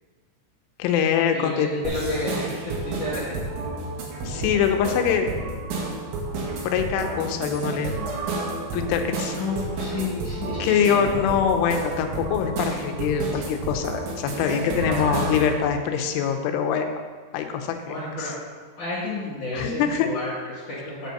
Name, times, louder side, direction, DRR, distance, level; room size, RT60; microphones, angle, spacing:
voice 1, 0.8-1.9 4.2-5.3 6.6-8.0 8.7-9.4 10.6-16.9 17.3-17.7 18.2-18.3 19.5-20.1, left 7 dB, 85° left, 5 dB, 3.2 m, -24 dB
voice 2, 1.3-3.4 9.4-11.3 14.8-15.3 16.2-16.3 17.9-18.3 18.8-21.1, left 2 dB, 55° left, -9 dB, 2.7 m, -31 dB
sound 1, 1.9-15.6, right 2 dB, 80° right, 3.9 m, -31 dB
8.3 x 5.4 x 6.5 m, 1.5 s
omnidirectional pair, 5.5 m